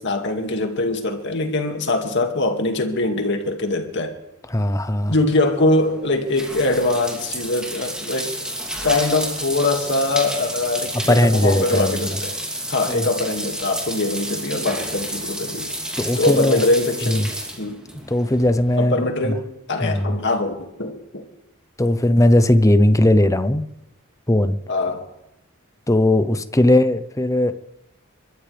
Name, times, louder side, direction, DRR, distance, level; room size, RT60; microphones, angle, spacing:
voice 1, 0.0-4.2 5.1-8.3 8.8-12.4 12.7-15.7 16.2-17.3 17.6-17.8 18.8-21.3 24.7-25.0, left 2 dB, 60° left, 4 dB, 2.3 m, -22 dB
voice 2, 4.5-5.1 11.1-12.2 12.9-13.1 16.0-16.6 17.1-17.3 18.1-19.4 19.8-20.2 21.8-23.7 24.3-24.6 25.9-27.5, left 1 dB, 15° left, 11 dB, 0.8 m, -18 dB
sound 1, 5.5-18.7, right 1 dB, 5° right, 3.0 m, -31 dB
30.0 x 14.0 x 3.5 m, 0.90 s
head